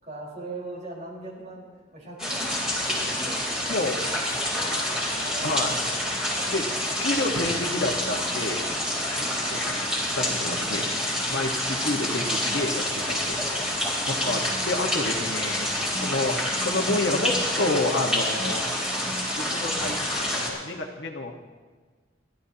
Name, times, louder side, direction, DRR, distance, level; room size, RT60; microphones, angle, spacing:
voice 1, 0.0-3.4 4.5-5.5 8.6-9.6 13.3-13.4 16.2-16.3, right 2 dB, 40° right, -3 dB, 4.3 m, -40 dB
sound 1, 2.2-20.5, left 1 dB, 5° right, 3.3 m, -27 dB
voice 2, 3.7-4.0 5.4-5.8 6.0-6.2 6.5-6.7 7.0-8.7 9.5-9.8 10.2-10.9 11.3-13.4 14.1-15.7 16.0-16.4 16.6-18.7 19.4-21.3, left 2 dB, 60° left, 2 dB, 1.3 m, -29 dB
29.5 x 12.0 x 2.9 m, 1.5 s
head